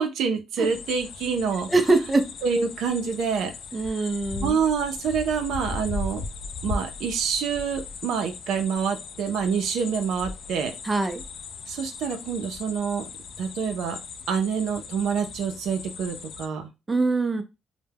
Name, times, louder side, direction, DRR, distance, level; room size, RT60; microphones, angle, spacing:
voice 1, 0.0-1.7 2.4-3.5 4.4-6.2 6.6-10.8 11.7-13.1 13.4-14.0 14.3-16.7, right 6 dB, 80° right, 0.5 m, -27 dB
sound 1, 0.6-16.5, left 4 dB, 70° left, 0.3 m, -38 dB
voice 2, 1.7-2.3 3.7-4.6 10.8-11.2 16.9-17.4, right 3 dB, 20° right, 0.5 m, -23 dB
2.2 x 2.1 x 3.3 m
cardioid pair, 90°, 0 cm